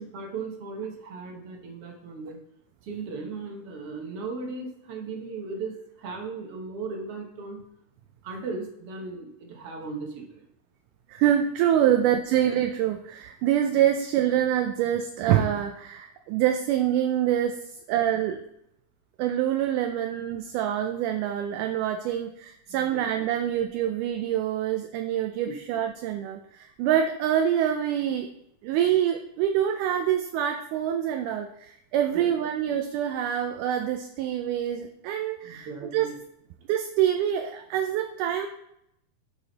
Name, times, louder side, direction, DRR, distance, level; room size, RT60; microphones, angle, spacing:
voice 1, 0.0-2.4 2.8-7.6 8.2-10.5 11.9-12.0 22.7-23.0 25.5-25.6 32.1-32.3 35.4-36.2, right 4 dB, 60° right, 2 dB, 1.7 m, -37 dB
voice 2, 11.1-17.6 17.9-18.4 19.2-28.3 28.6-36.1 36.7-38.5, right 10 dB, 80° right, 5 dB, 2.1 m, -25 dB
10.5 x 5.0 x 4.0 m, 0.76 s
omnidirectional pair, 3.8 m